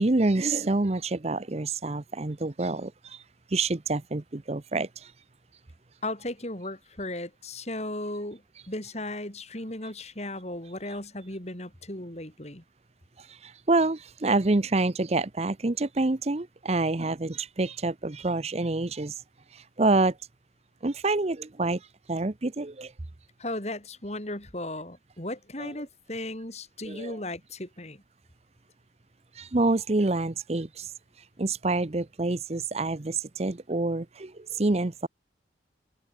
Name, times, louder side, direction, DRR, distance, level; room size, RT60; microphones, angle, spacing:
voice 1, 0.0-3.2 3.5-5.1 13.4-19.1 19.8-20.1 20.8-21.8 22.1-22.9 25.6-25.7 26.8-27.2 29.4-30.9 31.4-35.1, right 2 dB, 35° right, 0.8 m, -27 dB
voice 2, 6.0-8.4 8.7-12.6 23.4-28.0, left 1 dB, 35° left, 5.6 m, -36 dB
open air
head